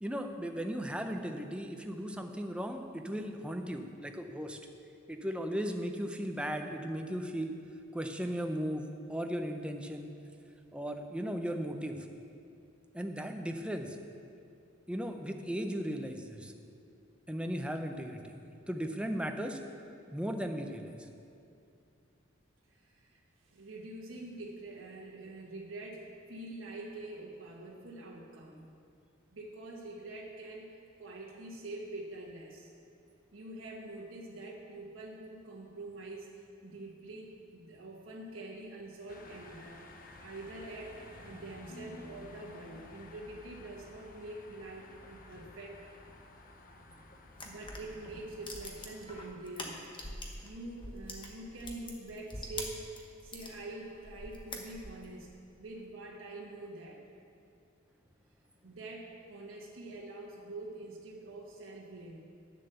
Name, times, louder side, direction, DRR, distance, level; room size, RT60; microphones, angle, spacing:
voice 1, 0.0-4.6 5.1-7.6 7.9-10.1 10.7-12.1 12.9-14.0 14.9-16.5 17.3-18.4 18.7-19.6 20.1-21.1, equal, 5° right, 4 dB, 0.6 m, -36 dB
voice 2, 22.7-23.2 23.5-28.7 29.3-32.7 33.3-39.8 40.2-45.9 47.4-49.8 50.2-55.3 55.6-57.1 58.6-62.2, right 2 dB, 70° right, -3 dB, 1.2 m, -45 dB
sound 1, 39.1-49.3, left 1 dB, 45° left, 0.8 m, -53 dB
sound 2, 47.3-50.5 50.8-53.5 54.0-55.1, left 2 dB, 25° left, 1.2 m, -44 dB
9.9 x 7.3 x 6.8 m, 2.5 s
head